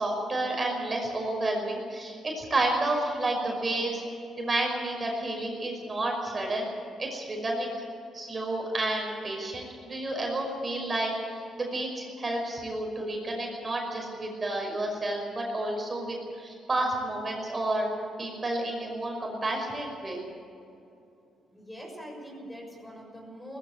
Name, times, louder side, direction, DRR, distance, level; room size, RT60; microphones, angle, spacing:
voice 1, 0.0-4.0 4.4-6.7 7.0-7.7 8.1-17.9 18.2-20.2, right 2 dB, 30° right, 1 dB, 5.5 m, -30 dB
voice 2, 21.5-23.6, equal, 10° left, 1 dB, 6.2 m, -43 dB
19.5 x 15.5 x 9.2 m, 2.6 s
cardioid pair, 90°, 0 cm